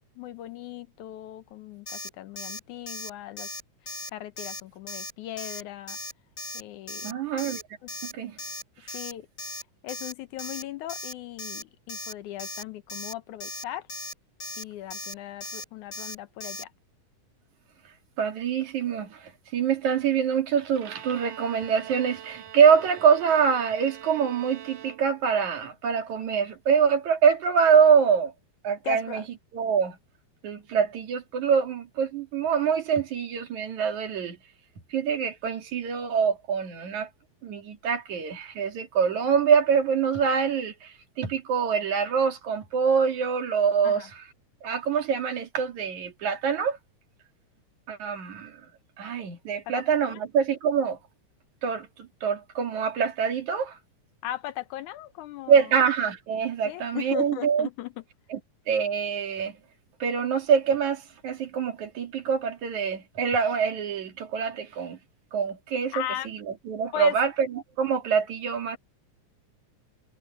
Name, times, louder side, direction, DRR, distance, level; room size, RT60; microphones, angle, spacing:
voice 1, 0.2-3.5 4.1-6.0 6.5-7.1 8.9-9.3 9.8-13.9 14.6-16.7 28.8-29.2 43.8-44.1 54.2-55.5 56.6-57.9 65.9-66.3 66.9-67.2, left 13 dB, 85° left, 2.3 m, -37 dB
Alarm, 1.9-2.1 2.4-2.6 2.9-3.1 3.4-3.6 3.9-4.1 4.4-4.6 4.9-5.1 5.4-5.6 5.9-6.1 6.4-6.6 6.9-7.1 7.4-7.6 7.9-8.1 8.4-8.6 8.9-9.1 9.4-9.6 9.9-10.1 10.4-10.6 10.9-11.1 11.4-11.6 11.9-12.1 12.4-12.6 12.9-13.1 13.4-13.6 13.9-14.1 14.4-14.6 14.9-15.1 15.4-15.6 15.9-16.1 16.4-16.6, left 1 dB, 25° left, 6.4 m, -37 dB
voice 2, 7.0-7.6 8.0-8.4 8.8-8.9 18.2-28.3 28.6-29.2 29.5-30.0 30.4-34.4 34.9-37.1 37.4-44.3 44.6-46.8 47.9-48.6 49.0-51.0 51.6-53.8 55.5-57.7 58.3-58.4 58.7-59.6 60.0-65.0 65.3-68.8, right 6 dB, 70° right, 3.6 m, -25 dB
Bowed string instrument, 20.7-25.5, right 10 dB, 90° right, 3.1 m, -45 dB
omnidirectional pair, 3.5 m